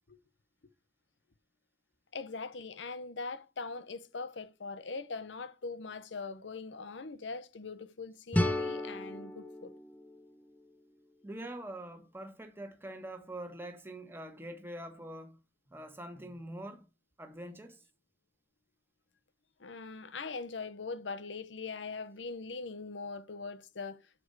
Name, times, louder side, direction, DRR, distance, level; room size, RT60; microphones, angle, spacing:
voice 1, 2.1-9.7 19.6-24.0, left 4 dB, 85° left, 0.8 m, -41 dB
sound 1, 8.3-11.2, left 1 dB, 10° left, 0.7 m, -34 dB
voice 2, 11.2-15.4 15.7-16.9 17.2-17.8, right 1 dB, 15° right, 1.2 m, -44 dB
7.0 x 4.7 x 6.5 m
head